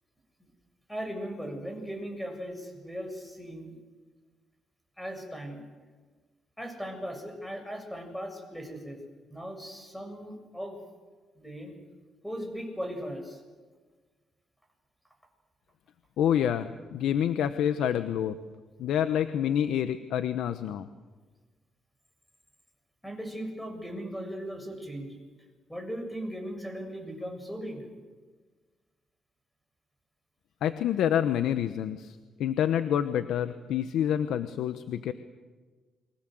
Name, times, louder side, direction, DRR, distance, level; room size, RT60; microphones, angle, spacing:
voice 1, 0.9-3.7 5.0-5.6 6.6-9.0 9.3-10.8 11.4-11.7 12.2-13.4 23.0-25.2 25.7-27.9, equal, 5° left, 5 dB, 7.2 m, -38 dB
voice 2, 16.2-18.4 18.8-20.9 30.6-35.1, left 9 dB, 80° left, 11 dB, 1.1 m, -27 dB
29.0 x 24.0 x 7.9 m, 1.4 s
cardioid pair, 90°, 0 cm